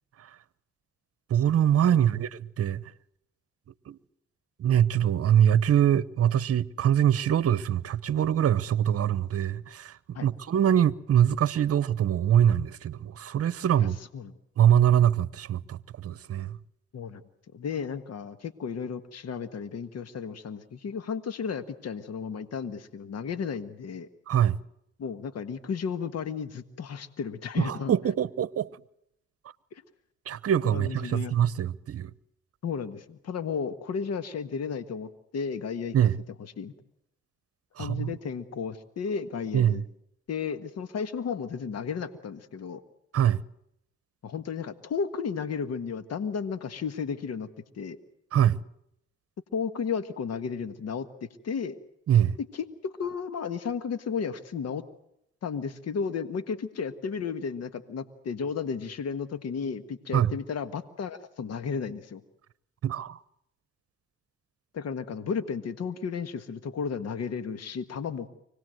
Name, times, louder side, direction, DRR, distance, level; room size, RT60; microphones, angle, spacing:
voice 1, 1.3-2.8 3.9-4.0 4.6-14.0 14.6-16.6 24.3-24.6 27.6-28.7 30.3-32.1 35.9-36.2 37.8-38.1 39.5-39.8 43.1-43.4 48.3-48.6 52.1-52.4 60.1-60.3 62.8-63.2, right 10 dB, 55° right, 0.9 m, -23 dB
voice 2, 13.8-14.3 16.9-17.2 17.5-24.1 25.0-27.9 30.7-31.3 32.6-35.9 36.6-36.7 37.8-39.8 40.3-42.8 44.2-47.5 47.7-48.0 49.5-51.7 52.5-54.8 55.4-62.2 64.7-68.3, left 6 dB, 60° left, 1.5 m, -33 dB
25.0 x 18.5 x 7.8 m
supercardioid pair, 60°, 29 cm